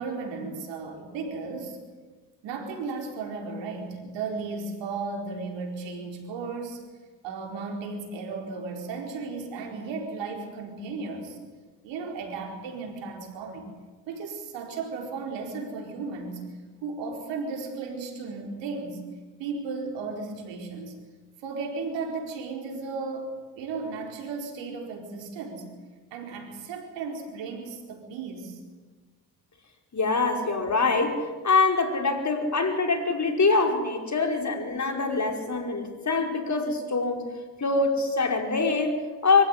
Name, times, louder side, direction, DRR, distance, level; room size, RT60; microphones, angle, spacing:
voice 1, 0.0-1.8 2.4-6.8 7.2-11.4 11.8-13.7 14.1-16.6 16.8-19.1 19.4-21.0 21.4-25.7 26.1-28.6, right 4 dB, 90° right, 3 dB, 4.6 m, -35 dB
voice 2, 29.9-37.3 37.6-39.4, left 3 dB, 40° left, 4 dB, 5.3 m, -24 dB
24.5 x 15.0 x 9.8 m, 1.3 s
supercardioid pair, 55°, 42 cm